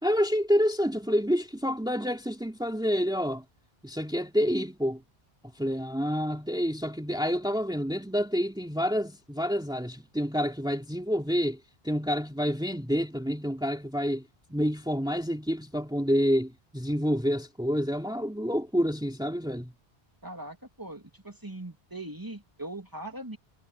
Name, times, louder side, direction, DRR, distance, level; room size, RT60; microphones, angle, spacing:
voice 1, 0.0-3.4 3.8-5.0 5.5-19.7, equal, 5° right, 2.9 m, -28 dB
voice 2, 20.2-23.4, right 1 dB, 20° right, 3.1 m, -40 dB
omnidirectional pair, 1.0 m